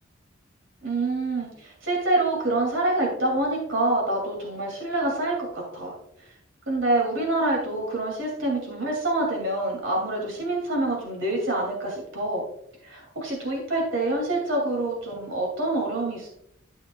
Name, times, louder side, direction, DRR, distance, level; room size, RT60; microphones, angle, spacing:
voice 1, 0.8-5.9 6.7-12.4 12.8-16.3, right 2 dB, 65° right, 0 dB, 2.4 m, -26 dB
12.5 x 5.7 x 2.3 m, 0.72 s
head